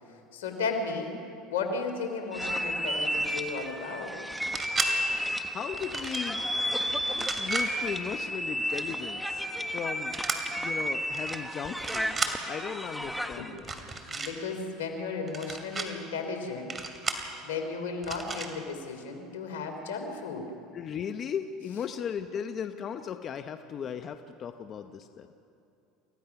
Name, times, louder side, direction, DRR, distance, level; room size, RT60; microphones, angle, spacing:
voice 1, 0.3-1.2 1.5-4.1 13.0-13.1 13.4-13.5 14.1-16.7 17.4-20.5, left 4 dB, 85° left, 5 dB, 3.2 m, -34 dB
sound 1, 2.3-13.5, equal, ahead, 1.4 m, -32 dB
sound 2, 4.3-4.9 5.7-6.3 7.1-7.7 10.1-10.4 11.1-11.3 11.7-12.3 13.6-14.3 15.3-15.9 16.7-17.3 18.0-18.5, right 4 dB, 25° right, 2.8 m, -33 dB
voice 2, 5.5-6.5 7.1-10.2 10.6-12.2 12.5-13.7 20.7-25.3, left 7 dB, 45° left, 8 dB, 0.9 m, -37 dB
29.0 x 15.5 x 5.9 m, 2.7 s
hypercardioid pair, 90°, 0 cm